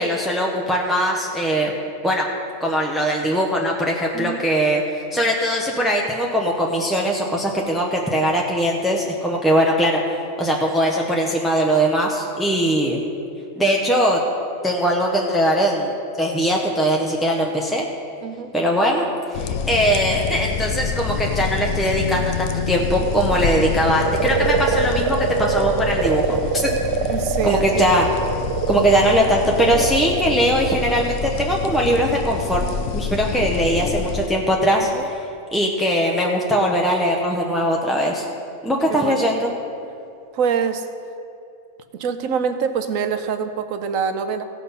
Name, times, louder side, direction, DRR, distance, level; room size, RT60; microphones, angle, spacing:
voice 1, 0.0-1.7 2.0-2.3 2.6-4.8 5.1-10.0 10.4-13.0 13.6-14.2 14.6-15.9 16.2-17.9 18.5-19.1 19.3-26.9 27.4-28.1 28.7-32.6 32.9-35.3 35.5-38.2 38.6-39.5, equal, ahead, -1 dB, 0.5 m, -20 dB
voice 2, 4.1-4.4 18.2-18.5 27.1-28.0 34.8-35.1 38.9-39.3 40.3-40.9 41.9-44.4, right 6 dB, 85° right, 9 dB, 1.1 m, -25 dB
sound 1, 19.3-34.3, left 6 dB, 75° left, 0.9 m, -27 dB
sound 2, 23.3-32.0, right 7 dB, 60° right, 0.7 m, -25 dB
16.5 x 5.9 x 5.5 m, 2.6 s
omnidirectional pair, 1.4 m